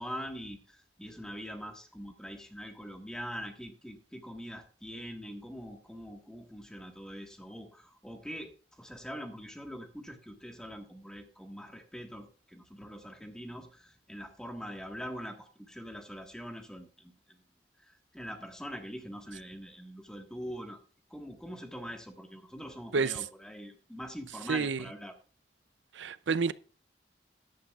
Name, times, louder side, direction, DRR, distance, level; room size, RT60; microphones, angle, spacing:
voice 1, 0.0-17.4 17.8-20.8 21.1-25.2, equal, 5° left, 1.5 m, -43 dB
voice 2, 22.9-23.2 24.5-24.8 25.9-26.5, right 5 dB, 85° right, 0.6 m, -29 dB
14.0 x 11.5 x 2.4 m
head